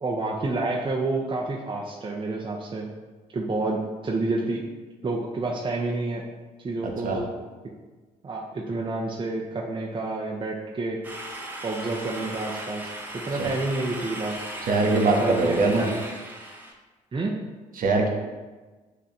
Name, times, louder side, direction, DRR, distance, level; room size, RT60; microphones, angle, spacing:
voice 1, 0.0-2.9 3.3-4.6 5.0-6.2 6.6-7.3 8.2-11.0 11.6-14.4 15.2-16.0 17.1-17.4, right 2 dB, 25° right, -2 dB, 0.8 m, -29 dB
voice 2, 6.8-7.2 13.4-13.5 14.7-15.9 17.8-18.1, right 3 dB, 40° right, 1 dB, 1.0 m, -22 dB
sound 1, 11.0-16.7, right 1 dB, 10° right, 1.2 m, -37 dB
9.4 x 3.6 x 2.8 m, 1.3 s
figure-of-eight pair, 45°, 21 cm